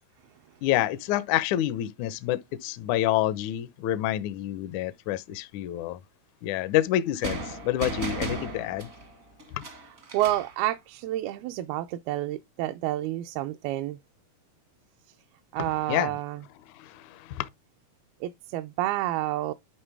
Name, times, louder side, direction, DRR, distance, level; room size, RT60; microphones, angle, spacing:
voice 1, 0.6-6.0 6.4-8.9 9.5-9.6 15.9-16.1 16.7-17.5, left 13 dB, 85° left, 1.7 m, -28 dB
sound 1, 7.2-10.6, right 3 dB, 60° right, 0.8 m, -35 dB
voice 2, 10.1-14.0 15.5-16.4 18.2-19.5, right 15 dB, 80° right, 2.5 m, -29 dB
11.5 x 3.9 x 3.4 m
omnidirectional pair, 4.5 m